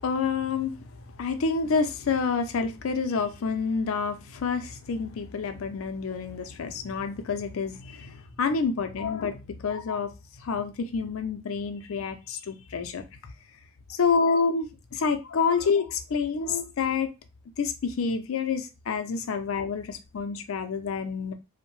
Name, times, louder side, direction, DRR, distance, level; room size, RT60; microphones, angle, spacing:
voice 1, 0.0-10.1 10.4-13.0 14.0-17.1 17.6-21.3, left 5 dB, 70° left, 8 dB, 0.4 m, -28 dB
2.6 x 2.1 x 3.0 m, 0.27 s
head